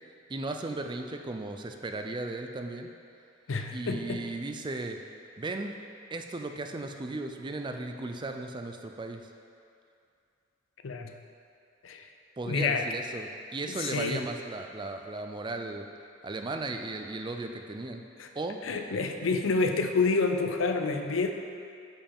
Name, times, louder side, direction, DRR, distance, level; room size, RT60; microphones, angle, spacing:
voice 1, 0.3-2.9 3.7-5.0 5.4-5.8 6.1-9.3 12.4-15.8 16.2-18.0 18.3-18.6, right 2 dB, 25° right, 5 dB, 0.4 m, -36 dB
voice 2, 3.5-4.2 10.8-11.1 11.8-12.0 12.4-12.8 13.7-14.2 18.2-18.3 18.6-21.3, left 4 dB, 80° left, 5 dB, 0.6 m, -28 dB
8.6 x 5.6 x 3.6 m, 2.5 s
head